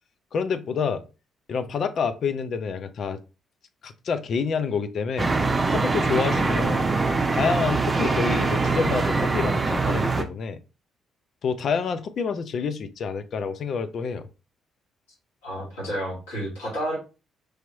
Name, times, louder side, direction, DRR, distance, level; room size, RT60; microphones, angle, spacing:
voice 1, 0.3-1.0 1.5-3.2 3.8-5.3 5.7-6.9 7.3-10.6 11.4-14.3, left 5 dB, 55° left, 11 dB, 0.5 m, -28 dB
sound 1, 5.2-10.2, right 3 dB, 30° right, 0.7 m, -23 dB
voice 2, 15.4-17.0, equal, 80° left, -5 dB, 2.1 m, -30 dB
4.8 x 3.0 x 2.8 m, 0.31 s
hypercardioid pair, 45°, 0 cm